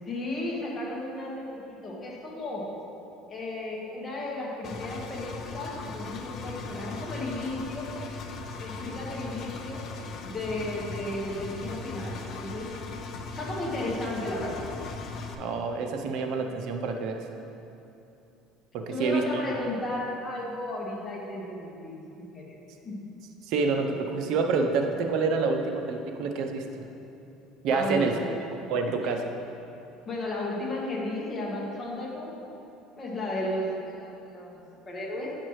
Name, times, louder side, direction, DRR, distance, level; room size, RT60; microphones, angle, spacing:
voice 1, 0.0-2.6 3.3-8.0 8.6-9.8 10.2-12.7 13.4-14.7 18.9-22.5 22.8-23.0 27.7-28.1 30.0-32.4 33.0-33.7 34.0-35.4, left 1 dB, 25° left, -4 dB, 1.4 m, -34 dB
Engine, 4.6-15.3, left 4 dB, 40° left, 0.6 m, -38 dB
voice 2, 15.4-17.2 18.7-19.4 23.5-26.8 27.6-28.1 28.7-29.3, right 4 dB, 60° right, 4 dB, 0.6 m, -27 dB
8.8 x 5.9 x 3.2 m, 2.8 s
cardioid pair, 140°, 0 cm